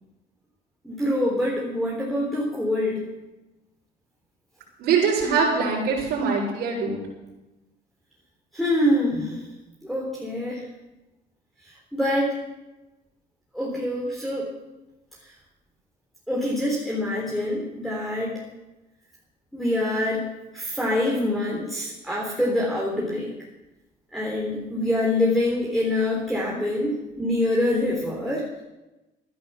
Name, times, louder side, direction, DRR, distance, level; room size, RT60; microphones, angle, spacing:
voice 1, 0.8-3.0 8.5-9.4 9.8-10.6 11.9-12.4 13.5-14.5 16.3-18.4 19.5-20.3 20.5-23.3 24.1-28.5, left 1 dB, ahead, -4 dB, 3.6 m, -25 dB
voice 2, 4.8-7.0, right 5 dB, 75° right, -8 dB, 5.9 m, -23 dB
15.5 x 11.0 x 6.9 m, 1.0 s
cardioid pair, 110°, 17 cm